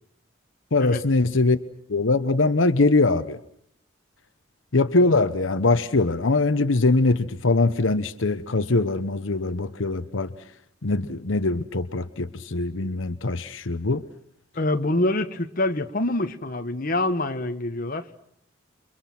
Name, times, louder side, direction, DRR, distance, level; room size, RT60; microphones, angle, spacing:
voice 1, 0.7-1.6 1.9-3.4 4.7-10.3 10.8-14.0, left 3 dB, 80° left, 1.0 m, -22 dB
voice 2, 14.5-18.0, left 2 dB, 45° left, 1.4 m, -25 dB
29.5 x 24.5 x 6.0 m
head